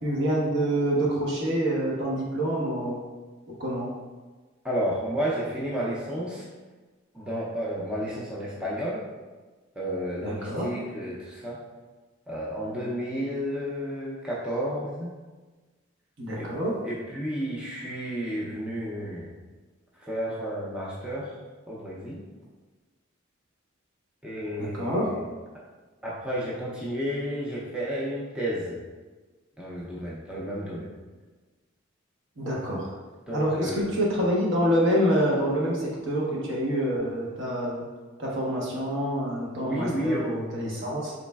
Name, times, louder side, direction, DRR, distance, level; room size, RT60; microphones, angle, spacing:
voice 1, 0.0-3.0 3.6-3.9 10.2-10.7 16.2-16.7 24.6-25.1 32.4-32.9 33.3-37.8 38.2-41.1, equal, 65° right, -4 dB, 0.9 m, -26 dB
voice 2, 4.6-6.4 7.1-9.0 9.8-11.6 12.3-15.1 16.4-16.5 16.8-19.3 20.0-21.3 21.7-22.2 24.2-25.2 26.0-28.8 29.6-30.9 33.3-33.9 39.6-40.3, equal, 5° right, -6 dB, 0.4 m, -31 dB
4.0 x 3.0 x 2.2 m, 1.3 s
head